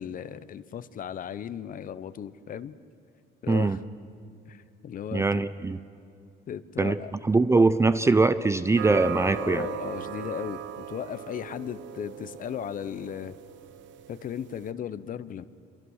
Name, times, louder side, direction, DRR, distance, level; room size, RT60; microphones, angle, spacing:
voice 1, 0.0-2.8 3.4-3.8 4.5-5.4 6.5-7.1 9.3-13.4 14.1-15.4, left 9 dB, 45° left, 15 dB, 0.7 m, -36 dB
voice 2, 3.5-3.8 5.1-5.8 6.8-7.0 7.3-9.7, right 3 dB, 15° right, 13 dB, 0.5 m, -22 dB
sound 1, 8.8-14.7, right 10 dB, 65° right, 0.9 m, -38 dB
26.0 x 22.5 x 6.4 m, 2.5 s
cardioid pair, 145°, 20 cm